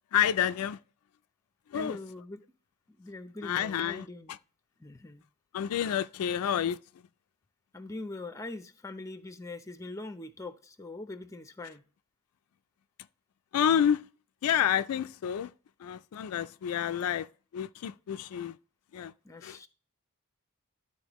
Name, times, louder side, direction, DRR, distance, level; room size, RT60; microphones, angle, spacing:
voice 1, 0.1-0.8 1.7-2.0 3.4-4.1 5.5-6.8 13.5-14.0 14.4-15.5 15.8-17.3 17.5-18.5 18.9-19.1 19.4-19.6, left 9 dB, 80° left, 0.3 m, -29 dB
voice 2, 1.7-2.4 2.9-4.3 4.8-5.2 7.7-11.8 19.2-19.7, left 2 dB, 15° left, 0.6 m, -42 dB
12.5 x 4.3 x 3.0 m
head